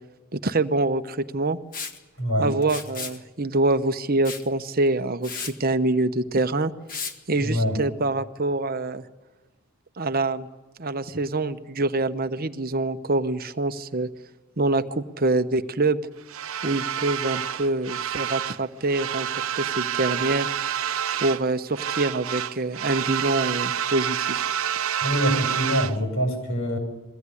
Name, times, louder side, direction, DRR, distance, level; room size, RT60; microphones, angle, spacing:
voice 1, 0.3-1.6 2.4-6.7 7.3-9.0 10.0-10.5 10.8-14.1 14.6-16.0 16.6-20.5 21.1-24.5, right 2 dB, 45° right, 10 dB, 1.0 m, -25 dB
Liquid, 1.7-2.0 2.6-3.2 4.2-4.5 4.9-5.0 5.2-5.5 6.9-7.1, left 5 dB, 40° left, 1.7 m, -34 dB
voice 2, 2.2-2.5 7.4-7.8 25.0-26.8, equal, 75° left, 3 dB, 7.4 m, -24 dB
sound 1, 16.3-18.6 18.9-21.5 21.7-26.0, right 9 dB, 70° right, 0.8 m, -28 dB
23.0 x 16.5 x 9.9 m, 1.2 s
head